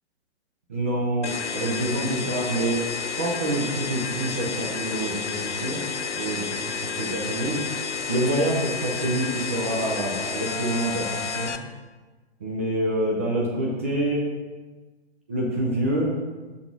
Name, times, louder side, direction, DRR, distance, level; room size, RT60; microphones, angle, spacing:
voice 1, 0.7-2.8 3.2-5.8 6.2-7.6 8.1-11.5 12.4-14.3 15.3-16.1, right 1 dB, 15° right, -3 dB, 0.3 m, -26 dB
sound 1, 1.2-11.6, left 5 dB, 90° left, 0.5 m, -31 dB
6.0 x 3.8 x 5.9 m, 1.3 s
figure-of-eight pair, 125°, 34 cm